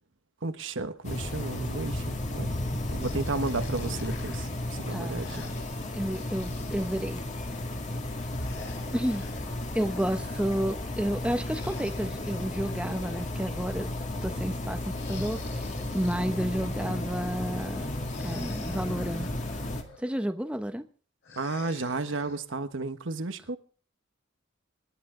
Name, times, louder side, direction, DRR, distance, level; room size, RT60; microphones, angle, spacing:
voice 1, 0.4-2.5 2.9-4.5 4.8-5.5 21.4-23.6, right 3 dB, 70° right, 1.2 m, -33 dB
sound 1, 1.0-19.8, left 1 dB, 40° left, 2.2 m, -34 dB
sound 2, 3.0-7.2 8.2-10.4 11.3-13.7 14.8-17.0 18.0-20.2 21.2-22.4, left 4 dB, 60° left, 4.1 m, -49 dB
voice 2, 4.9-5.2 5.9-7.2 8.9-9.2 9.7-13.9 14.2-15.6 15.9-18.0 18.2-19.3 20.0-20.9, equal, 5° right, 0.9 m, -31 dB
26.0 x 10.5 x 3.8 m
head